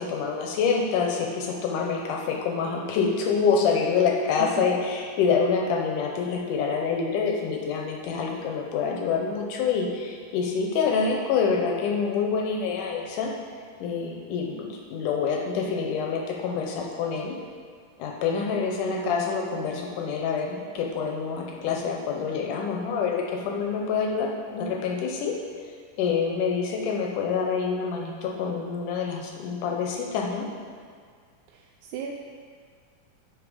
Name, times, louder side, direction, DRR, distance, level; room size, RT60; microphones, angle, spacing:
voice 1, 0.0-13.3 13.8-17.3 18.0-25.4 25.6-25.7 26.0-30.5, left 5 dB, 75° left, 0 dB, 2.1 m, -26 dB
voice 2, 18.9-19.3 31.5-32.1, right 8 dB, 80° right, 0 dB, 1.9 m, -36 dB
7.3 x 6.5 x 4.9 m, 2.1 s
omnidirectional pair, 3.9 m